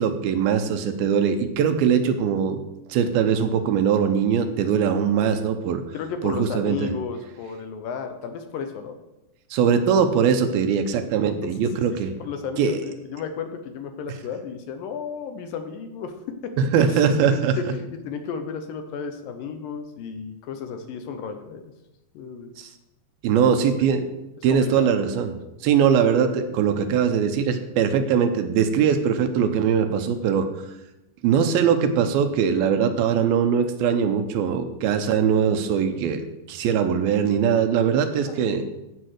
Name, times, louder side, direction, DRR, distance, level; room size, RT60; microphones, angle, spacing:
voice 1, 0.0-2.6 2.9-5.8 6.2-6.9 9.5-12.1 12.6-12.8 16.6-17.6 22.6-22.7 23.2-24.0 24.4-25.4 25.6-30.5 31.2-38.6, right 7 dB, 80° right, 7 dB, 2.6 m, -21 dB
voice 2, 5.9-9.0 11.2-11.5 11.9-16.2 16.4-16.5 16.9-21.7 22.1-22.5 23.4-23.7 24.5-25.1 38.2-38.5, left 6 dB, 75° left, 7 dB, 2.4 m, -34 dB
14.5 x 5.0 x 6.5 m, 0.94 s
omnidirectional pair, 4.5 m